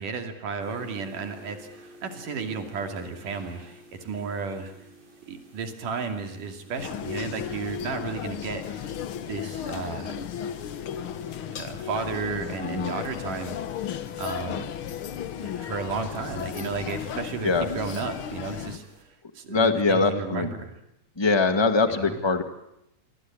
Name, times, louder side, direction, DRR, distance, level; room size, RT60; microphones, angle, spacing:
voice 1, 0.0-4.7 5.3-8.6 9.3-10.2 11.5-13.6 14.2-14.7 15.4-20.7 22.0-22.2, right 5 dB, 85° right, 6 dB, 4.2 m, -33 dB
sound 1, 0.6-19.0, right 2 dB, 70° right, 6.7 m, -53 dB
sound 2, 6.8-18.8, left 9 dB, 60° left, 1.5 m, -34 dB
voice 2, 12.6-12.9 17.4-17.7 19.5-20.5 21.2-22.4, left 4 dB, 10° left, 8 dB, 1.2 m, -22 dB
28.0 x 23.0 x 8.8 m, 0.82 s
omnidirectional pair, 3.6 m